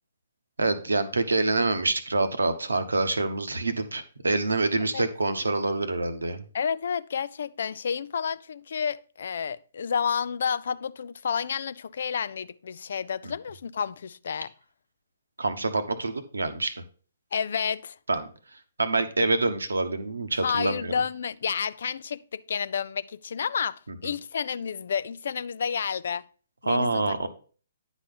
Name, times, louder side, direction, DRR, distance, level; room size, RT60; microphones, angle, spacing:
voice 1, 0.6-6.4 13.2-13.3 15.4-16.7 18.1-18.3 18.8-20.9 24.0-24.1 26.7-27.3, right 2 dB, 80° right, 1.0 m, -26 dB
voice 2, 6.5-14.5 17.3-18.0 20.3-26.2 26.6-27.0, left 7 dB, 60° left, 0.4 m, -30 dB
9.8 x 4.2 x 5.3 m
figure-of-eight pair, 130°, 0 cm